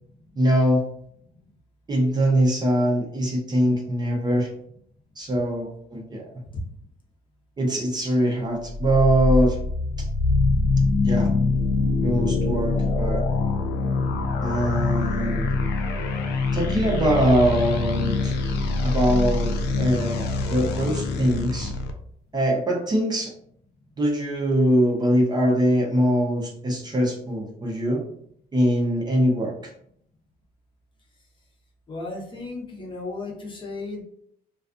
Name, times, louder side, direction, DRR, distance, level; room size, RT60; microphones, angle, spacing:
voice 1, 0.4-0.8 1.9-4.5 5.2-6.3 7.6-9.6 11.0-11.3 12.0-13.2 14.4-15.4 16.5-18.3 18.8-21.7 22.3-23.3 24.0-28.0 28.5-29.7, equal, 25° right, -1 dB, 0.6 m, -22 dB
sound 1, 8.7-21.9, left 3 dB, 75° left, 0.4 m, -24 dB
voice 2, 31.9-34.0, left 2 dB, 30° left, -2 dB, 0.7 m, -34 dB
2.4 x 2.3 x 2.4 m, 0.68 s
cardioid pair, 110°, 17 cm